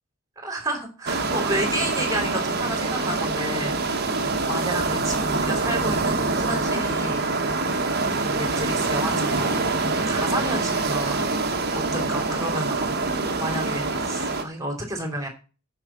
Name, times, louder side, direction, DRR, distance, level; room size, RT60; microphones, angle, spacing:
voice 1, 0.4-7.6 8.1-11.3 11.7-12.7 13.4-15.3, right 1 dB, 15° right, 3 dB, 3.0 m, -31 dB
sound 1, 1.1-14.4, right 3 dB, 45° right, 1.4 m, -25 dB
8.9 x 5.7 x 7.3 m, 0.34 s
head